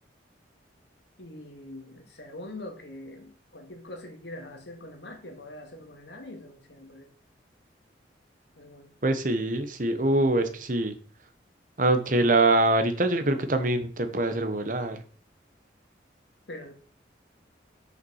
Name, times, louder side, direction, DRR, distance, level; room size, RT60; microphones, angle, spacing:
voice 1, 1.2-7.1 8.6-9.0 16.5-16.7, left 1 dB, 70° left, 3 dB, 2.2 m, -43 dB
voice 2, 9.0-11.0 11.8-15.0, right 2 dB, 45° right, 8 dB, 1.1 m, -24 dB
7.0 x 5.7 x 6.4 m, 0.42 s
head